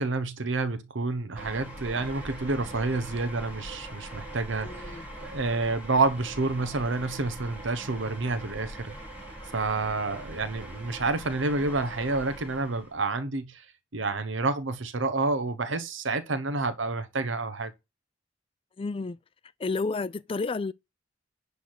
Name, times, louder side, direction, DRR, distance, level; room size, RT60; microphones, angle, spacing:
voice 1, 0.0-8.9 9.5-13.7 13.9-17.7, right 3 dB, 80° right, 0.9 m, -29 dB
sound 1, 1.4-13.0, right 1 dB, 10° right, 3.3 m, -42 dB
voice 2, 4.6-5.1 18.8-19.2 19.6-20.7, left 3 dB, 30° left, 0.4 m, -31 dB
10.5 x 3.5 x 6.1 m
head